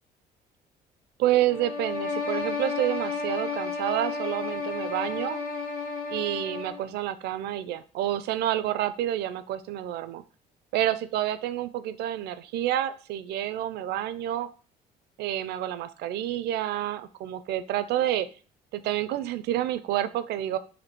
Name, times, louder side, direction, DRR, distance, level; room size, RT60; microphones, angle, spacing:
voice 1, 1.2-5.4 6.1-10.2 10.7-14.5 15.2-18.3 18.7-20.6, right 12 dB, 75° right, 13 dB, 0.4 m, -29 dB
sound 1, 1.5-6.9, left 4 dB, 60° left, 1.4 m, -32 dB
4.2 x 2.6 x 4.4 m, 0.38 s
cardioid pair, 110°, 17 cm